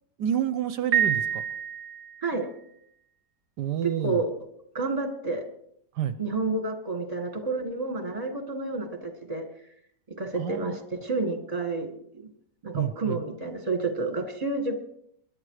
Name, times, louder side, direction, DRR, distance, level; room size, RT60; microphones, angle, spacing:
voice 1, 0.2-1.4 3.6-4.2 5.9-6.2 10.3-10.8 12.7-13.2, right 10 dB, 75° right, 12 dB, 1.3 m, -29 dB
Piano, 0.9-2.4, right 9 dB, 60° right, 1.3 m, -27 dB
voice 2, 3.8-4.3 4.7-5.4 6.2-9.4 10.2-12.3 12.6-14.8, right 3 dB, 20° right, 6 dB, 2.0 m, -30 dB
21.5 x 11.0 x 4.9 m, 0.71 s
omnidirectional pair, 1.9 m